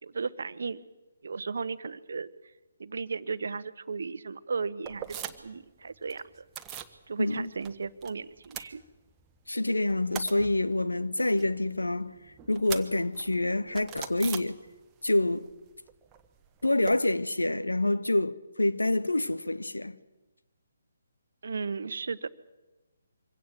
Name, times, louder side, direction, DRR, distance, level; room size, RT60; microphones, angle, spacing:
voice 1, 0.0-0.8 1.2-2.3 2.8-6.5 7.1-8.8 21.4-22.3, right 4 dB, 60° right, 1.0 m, -35 dB
sound 1, 4.8-5.6 5.9-7.0 7.3-8.1 8.4-9.4 9.7-15.1 15.3-16.9, right 9 dB, 15° right, 1.3 m, -42 dB
voice 2, 7.2-7.5 9.5-12.1 12.5-14.6 15.0-15.5 16.6-20.0, left 2 dB, 80° left, 1.0 m, -27 dB
24.5 x 17.0 x 7.8 m
figure-of-eight pair, 140°, 0 cm